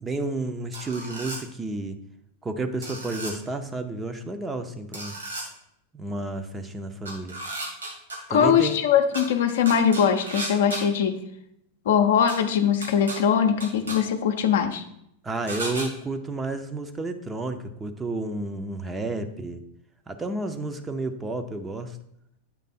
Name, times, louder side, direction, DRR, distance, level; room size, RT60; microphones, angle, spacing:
voice 1, 0.0-2.0 2.4-5.2 5.9-7.4 8.3-8.8 15.2-19.6 20.1-22.0, right 2 dB, 15° right, 7 dB, 0.6 m, -31 dB
sound 1, 0.7-1.4 2.8-3.3 4.9-5.4 7.1-8.2 9.1-9.2 9.7-10.8 12.3-12.4 12.8-13.2 13.6-14.0 15.5-15.9, right 1 dB, 75° right, 2.1 m, -34 dB
voice 2, 8.3-11.2 11.9-14.8, left 8 dB, 60° left, 7 dB, 0.6 m, -21 dB
8.4 x 3.3 x 4.2 m, 0.76 s
figure-of-eight pair, 90°, 0 cm